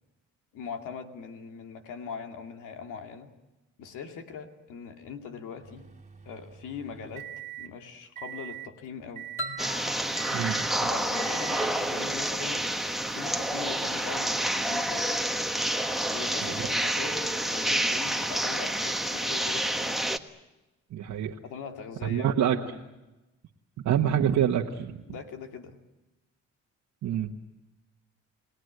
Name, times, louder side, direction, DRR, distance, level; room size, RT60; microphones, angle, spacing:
voice 1, 0.5-3.3 3.8-5.9 6.2-7.3 7.6-9.3 10.9-15.1 16.1-20.0 21.4-22.9 25.1-25.8, left 6 dB, 85° left, 5 dB, 2.5 m, -41 dB
sound 1, 5.6-7.7 8.2-8.7 9.2-9.7 10.2-10.7 11.2-11.7, right 13 dB, 25° right, 2.2 m, -42 dB
sound 2, 9.4-12.1, left 1 dB, 40° left, 2.1 m, -41 dB
sound 3, 9.6-20.2, right 1 dB, ahead, 1.3 m, -29 dB
voice 2, 10.3-10.9 16.4-16.5 20.9-21.3 22.0-22.6 23.8-25.0 27.0-27.3, right 9 dB, 70° right, 0 dB, 1.5 m, -26 dB
29.5 x 19.0 x 8.0 m, 1.0 s
cardioid pair, 90°, 30 cm